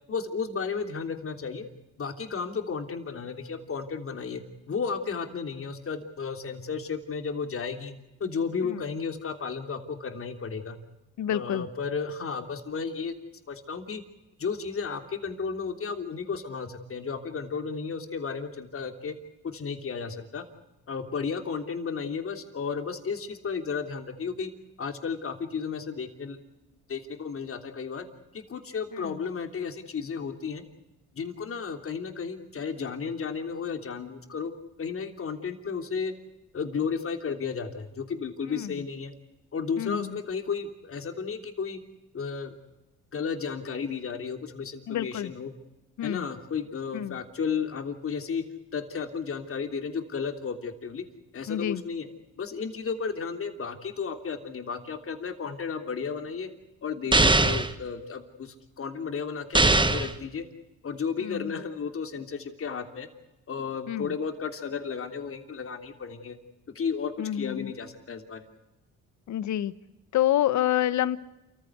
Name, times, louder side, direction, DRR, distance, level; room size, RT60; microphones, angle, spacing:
voice 1, 0.1-1.7 2.0-4.4 4.7-7.9 8.2-10.8 11.3-13.1 13.5-14.0 14.4-19.1 19.4-20.4 20.9-24.5 24.8-26.4 26.9-28.1 28.3-30.6 31.1-34.5 34.8-36.1 36.5-39.1 39.5-41.8 42.1-42.5 43.1-45.5 46.0-48.4 48.7-51.0 51.3-52.1 52.4-56.5 56.8-60.4 60.8-63.1 63.5-66.4 66.7-68.5, left 5 dB, 45° left, 6 dB, 3.2 m, -33 dB
voice 2, 11.2-11.7 29.0-29.2 38.5-38.7 39.8-40.2 44.9-45.3 46.0-46.3 46.9-47.2 51.5-51.8 61.2-61.5 63.9-64.1 67.2-67.7 69.3-69.7 70.1-71.2, left 12 dB, 70° left, 16 dB, 1.2 m, -28 dB
sound 1, 57.1-57.7 59.5-60.1, right 2 dB, 15° right, 1.4 m, -20 dB
28.5 x 15.0 x 8.2 m, 0.98 s
cardioid pair, 90°, 30 cm